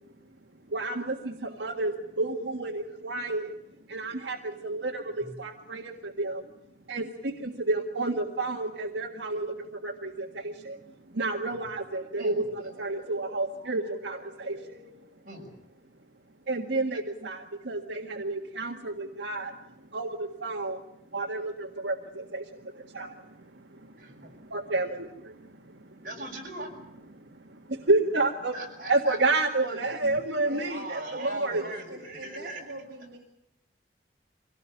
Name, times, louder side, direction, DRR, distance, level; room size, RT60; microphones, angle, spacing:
voice 1, 0.7-3.6 3.9-6.4 6.9-10.8 11.1-14.9 16.5-20.8 21.1-26.0 27.1-28.6 28.9-31.6, right 2 dB, 85° right, 3 dB, 1.7 m, -31 dB
voice 2, 24.0-24.3 26.0-26.7 28.5-29.2 30.6-32.6, right 1 dB, 50° right, 0 dB, 6.9 m, -39 dB
voice 3, 30.4-30.7 31.3-33.2, right 1 dB, 65° right, -1 dB, 3.5 m, -43 dB
24.5 x 17.5 x 9.0 m, 0.84 s
head